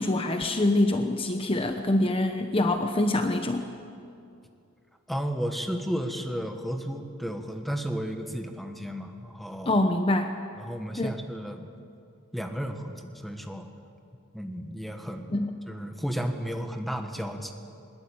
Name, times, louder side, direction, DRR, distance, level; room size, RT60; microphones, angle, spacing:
voice 1, 0.0-3.7 9.6-10.3 11.0-11.1 15.3-15.5, left 1 dB, 25° left, 6 dB, 0.9 m, -25 dB
voice 2, 5.1-9.8 10.5-11.7 12.3-13.7 14.3-15.4 15.7-17.5, equal, ahead, 5 dB, 1.6 m, -33 dB
21.5 x 21.0 x 8.8 m, 2.5 s
head